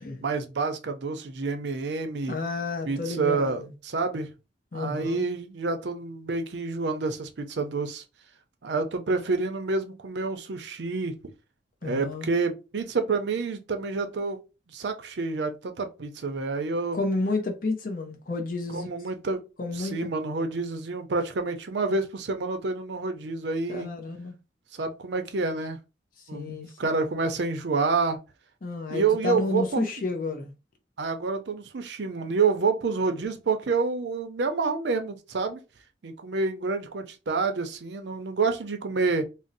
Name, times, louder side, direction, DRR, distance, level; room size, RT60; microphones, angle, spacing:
voice 1, 0.2-2.4 2.8-4.3 4.7-8.0 8.6-11.1 11.8-14.4 14.7-17.0 18.7-19.4 19.7-23.9 24.7-25.8 26.3-28.2 28.9-29.8 31.0-35.6 36.0-39.3, right 4 dB, 70° right, 0.5 m, -28 dB
voice 2, 2.3-3.7 4.7-5.2 11.8-12.3 16.9-18.9 19.6-20.1 23.7-24.3 26.2-27.0 28.6-30.5, left 3 dB, 45° left, 0.5 m, -31 dB
2.6 x 2.0 x 3.9 m
head